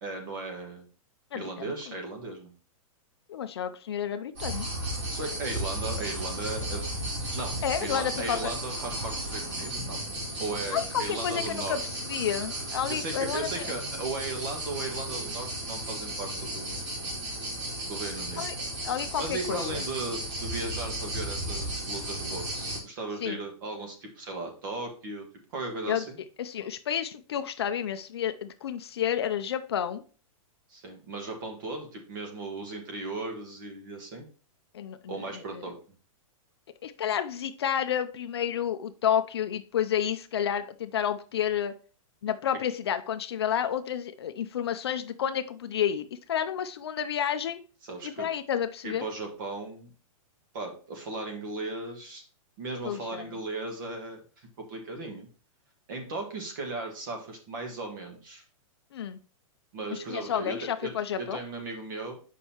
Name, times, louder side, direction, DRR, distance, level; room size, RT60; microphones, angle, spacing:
voice 1, 0.0-0.9 1.3-2.5 5.1-6.9 7.3-10.0 10.4-11.8 12.9-16.8 17.9-18.5 19.2-25.3 25.5-26.2 30.7-34.2 35.1-35.8 47.8-48.3 48.8-49.9 50.5-52.2 52.6-55.3 55.9-58.4 59.7-60.9 61.2-62.2, right 3 dB, 35° right, 3 dB, 1.5 m, -37 dB
voice 2, 1.3-1.7 3.3-4.7 7.6-8.5 10.7-13.7 18.4-18.5 18.8-19.8 23.2-23.4 25.9-26.0 26.4-30.0 34.7-35.6 36.8-41.7 42.2-47.6 48.0-49.0 52.8-53.4 58.9-59.2 59.9-61.4, left 9 dB, 45° left, 9 dB, 0.4 m, -30 dB
sound 1, 4.4-22.8, right 1 dB, 55° right, 3.1 m, -34 dB
7.4 x 5.3 x 2.9 m, 0.38 s
hypercardioid pair, 180°, 18 cm